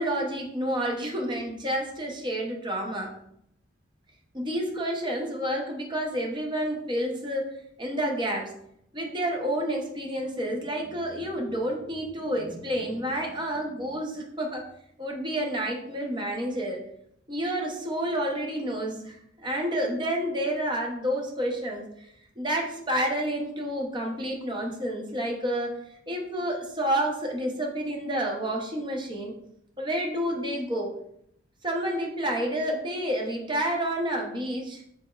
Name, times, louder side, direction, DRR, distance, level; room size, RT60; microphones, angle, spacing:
voice 1, 0.0-3.1 4.3-8.5 8.9-14.6 15.0-16.8 17.3-21.8 22.4-29.3 29.8-30.9 31.6-34.8, right 1 dB, 25° right, 0 dB, 0.7 m, -29 dB
5.0 x 4.2 x 2.4 m, 0.73 s
head